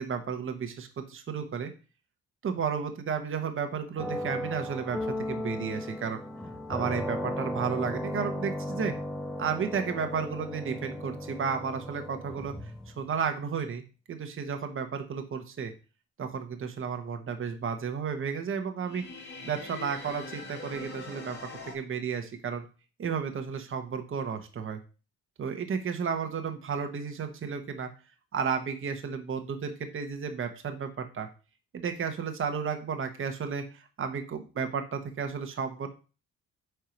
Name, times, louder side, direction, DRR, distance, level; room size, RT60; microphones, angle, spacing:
voice 1, 0.0-1.7 2.4-6.2 6.7-8.9 9.4-12.5 13.0-13.8 14.1-15.7 16.2-19.0 19.5-21.4 21.7-22.7 23.0-24.8 25.4-27.9 28.3-31.3 31.7-35.9, right 6 dB, 45° right, 6 dB, 1.1 m, -33 dB
sound 1, 4.0-13.1, left 1 dB, 5° left, 0.7 m, -36 dB
sound 2, 18.8-21.7, left 3 dB, 35° left, 2.0 m, -43 dB
4.5 x 4.5 x 5.2 m, 0.34 s
cardioid pair, 90°, 30 cm